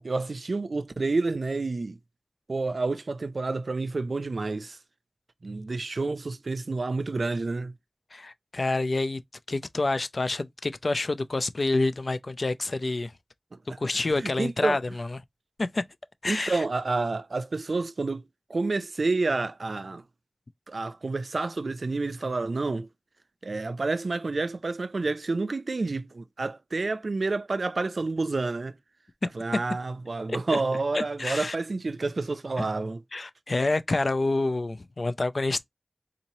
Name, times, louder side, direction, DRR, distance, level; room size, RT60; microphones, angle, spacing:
voice 1, 0.0-2.0 2.5-4.8 5.4-7.7 13.5-13.6 14.0-14.8 16.3-18.2 18.5-20.0 20.7-22.9 23.4-28.7 29.3-33.0, right 3 dB, 85° right, 0.3 m, -29 dB
voice 2, 8.1-9.2 9.5-13.1 13.8-15.2 15.6-15.8 16.2-16.6 30.5-30.6 30.9-31.6 32.6-32.7 33.1-35.6, left 2 dB, 70° left, 0.4 m, -28 dB
3.9 x 3.0 x 2.7 m
wide cardioid pair, 50°, 0 cm